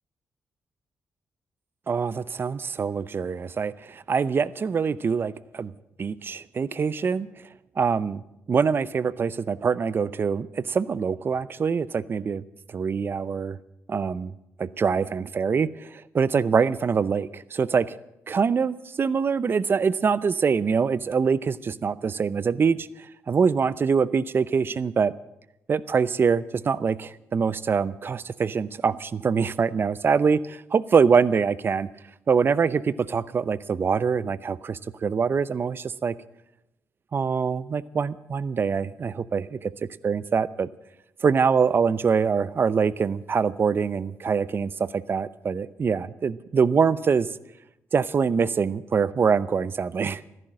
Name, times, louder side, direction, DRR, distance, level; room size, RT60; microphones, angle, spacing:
voice 1, 1.9-5.7 6.0-7.3 7.8-8.2 8.5-12.4 12.7-13.6 13.9-14.3 14.6-18.0 18.3-22.9 23.3-25.1 25.7-31.9 32.3-36.1 37.1-39.7 40.0-40.7 41.2-47.3 47.9-50.2, right 6 dB, 45° right, 18 dB, 0.6 m, -24 dB
14.5 x 11.0 x 7.6 m, 0.86 s
cardioid pair, 75°, 5 cm